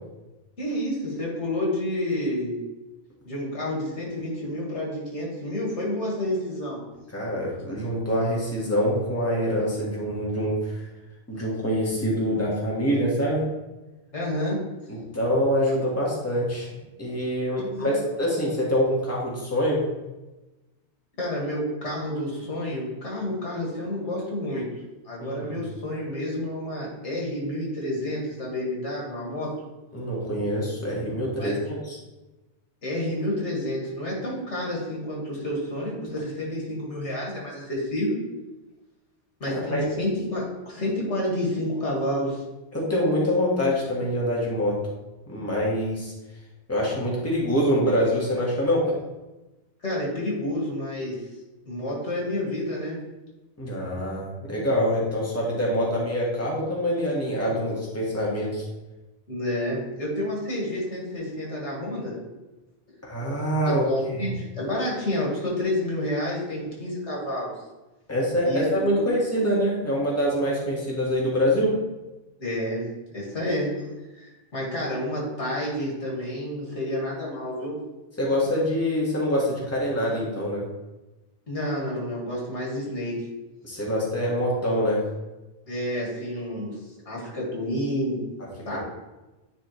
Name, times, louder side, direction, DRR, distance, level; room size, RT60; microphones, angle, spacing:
voice 1, 0.6-2.6 3.2-6.8 14.1-14.6 17.6-18.0 21.2-24.7 25.0-29.5 31.3-31.5 32.8-38.2 39.4-42.5 49.8-51.2 51.7-53.0 59.3-62.2 62.9-63.0 63.6-67.5 68.4-68.7 69.0-69.1 72.4-72.9 73.1-73.9 74.1-77.8 81.5-83.2 85.7-88.2 88.7-88.8, left 1 dB, 85° left, -4 dB, 2.4 m, -29 dB
voice 2, 7.1-10.7 11.3-13.4 14.9-16.7 17.0-19.8 25.2-25.6 29.9-32.0 39.7-39.8 42.7-44.8 45.3-46.1 46.7-48.8 53.6-58.6 63.0-63.9 64.2-64.3 68.1-71.7 78.2-80.6 83.6-85.0, equal, 15° left, -5 dB, 1.7 m, -25 dB
9.9 x 4.2 x 3.2 m, 1.1 s
omnidirectional pair, 1.2 m